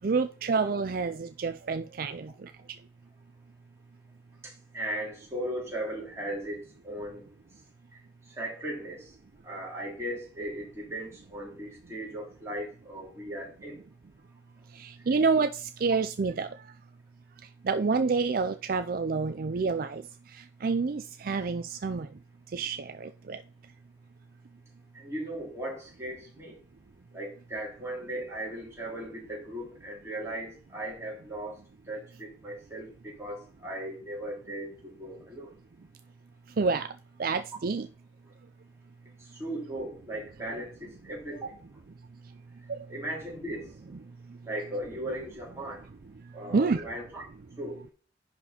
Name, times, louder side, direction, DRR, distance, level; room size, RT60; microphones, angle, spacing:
voice 1, 0.0-2.5 14.7-16.5 17.6-20.0 20.3-22.1 22.5-23.4 36.6-36.9 37.2-37.9 42.7-42.9 46.5-46.9, right 4 dB, 55° right, 0.4 m, -28 dB
voice 2, 4.4-7.3 7.9-8.0 8.3-9.1 9.4-13.8 24.9-26.6 27.1-31.6 31.9-35.5 39.2-41.6 42.9-43.7 44.4-45.9 46.3-47.2 47.6-47.8, right 1 dB, 15° right, 3.4 m, -37 dB
10.5 x 4.2 x 4.3 m
head